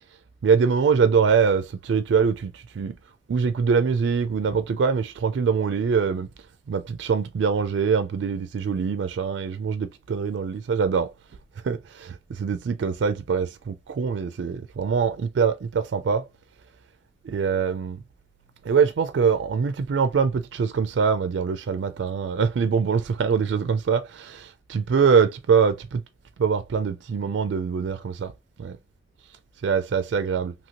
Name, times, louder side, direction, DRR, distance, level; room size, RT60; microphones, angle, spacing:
voice 1, 0.4-3.0 3.3-6.3 6.7-11.1 11.6-16.3 17.2-18.0 18.6-26.0 26.4-28.3 28.6-28.8 29.6-30.5, right 6 dB, 85° right, 0.3 m, -23 dB
2.8 x 2.8 x 2.7 m
head